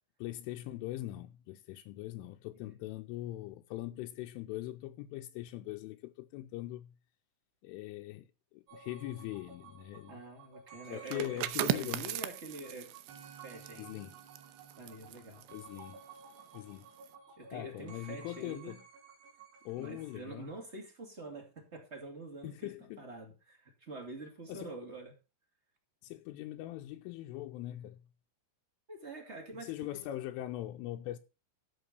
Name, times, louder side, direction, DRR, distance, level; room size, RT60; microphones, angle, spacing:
voice 1, 0.2-6.9 7.6-10.2 10.9-12.1 13.8-14.2 15.5-16.0 16.5-16.9 17.5-18.8 19.7-20.5 22.4-23.1 24.5-24.7 26.0-28.0 29.5-31.2, left 15 dB, 90° left, 3.3 m, -41 dB
sound 1, 8.7-20.2, right 6 dB, 65° right, 3.9 m, -55 dB
voice 2, 10.1-11.4 11.7-12.9 13.4-14.0 14.8-15.4 17.4-18.8 19.7-25.1 28.9-30.0, right 2 dB, 30° right, 1.3 m, -46 dB
sound 2, 11.0-16.5 16.8-17.1, right 16 dB, 85° right, 2.4 m, -38 dB
13.5 x 5.0 x 6.7 m
omnidirectional pair, 5.6 m